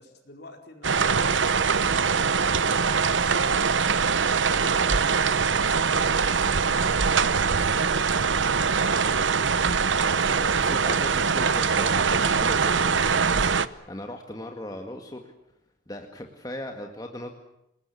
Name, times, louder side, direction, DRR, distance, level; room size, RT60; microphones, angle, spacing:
voice 1, 0.0-1.4 2.0-9.4, left 2 dB, 55° left, 4 dB, 4.7 m, -47 dB
sound 1, 0.8-13.7, right 5 dB, 75° right, 0.9 m, -23 dB
voice 2, 10.4-15.3 15.9-17.3, left 1 dB, 20° left, 3 dB, 1.9 m, -38 dB
28.0 x 20.0 x 8.6 m, 0.82 s
head